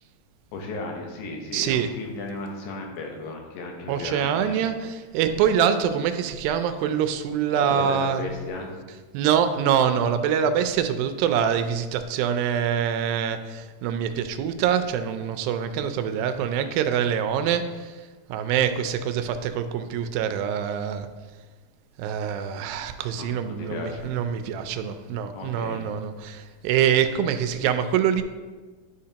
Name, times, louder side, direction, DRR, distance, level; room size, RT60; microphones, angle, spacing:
voice 1, 0.5-4.6 5.3-5.4 7.5-8.7 23.2-24.1 25.3-25.8, left 3 dB, 85° left, 1 dB, 2.9 m, -35 dB
voice 2, 1.5-1.9 3.9-8.2 9.1-18.0 18.3-21.1 22.0-28.2, right 8 dB, 90° right, 9 dB, 2.3 m, -25 dB
10.5 x 5.0 x 2.8 m, 1.3 s
omnidirectional pair, 4.1 m